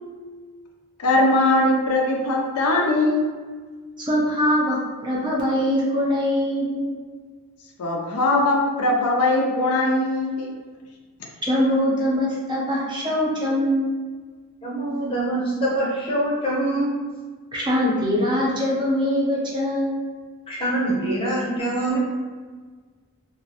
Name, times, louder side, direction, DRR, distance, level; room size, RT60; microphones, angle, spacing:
voice 1, 1.0-3.3 7.8-10.5, left 2 dB, 75° left, 0 dB, 0.4 m, -20 dB
voice 2, 4.0-6.8 11.4-13.9 17.5-20.0, equal, 20° right, -5 dB, 0.5 m, -22 dB
voice 3, 14.6-16.9 20.5-22.0, right 1 dB, 25° left, -6 dB, 0.6 m, -24 dB
2.4 x 2.0 x 2.7 m, 1.5 s
head